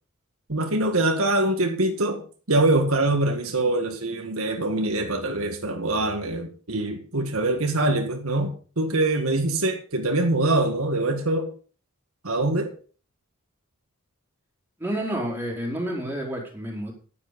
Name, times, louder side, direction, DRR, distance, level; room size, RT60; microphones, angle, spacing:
voice 1, 0.5-2.2 2.5-11.5 12.2-12.7, right 2 dB, 70° right, 1.8 m, -24 dB
voice 2, 14.8-16.9, right 1 dB, 10° right, 4.3 m, -29 dB
11.0 x 10.0 x 5.3 m
head